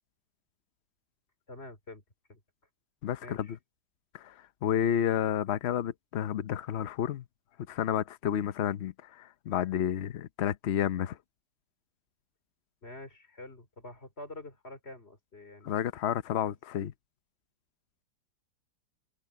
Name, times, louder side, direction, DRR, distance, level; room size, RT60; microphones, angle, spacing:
voice 1, 1.5-2.0 2.3-2.4 3.2-3.6 12.8-15.8 16.5-16.6, left 2 dB, 30° left, 4.1 m, -47 dB
voice 2, 3.0-3.6 4.1-7.2 7.7-11.2 15.6-16.9, left 10 dB, 80° left, 0.5 m, -31 dB
omnidirectional pair, 2.1 m